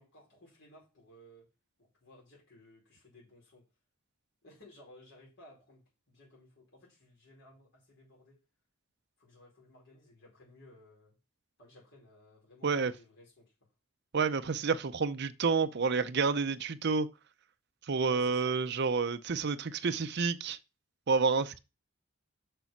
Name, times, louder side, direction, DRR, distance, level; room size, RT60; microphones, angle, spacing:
voice 1, 0.0-1.5 1.8-3.6 4.4-8.4 9.2-11.2 11.6-13.5 18.0-18.7, left 1 dB, 60° left, 5.0 m, -58 dB
voice 2, 14.1-17.1 17.9-20.6 21.1-21.6, right 4 dB, 55° right, 0.6 m, -29 dB
6.8 x 6.0 x 5.9 m
head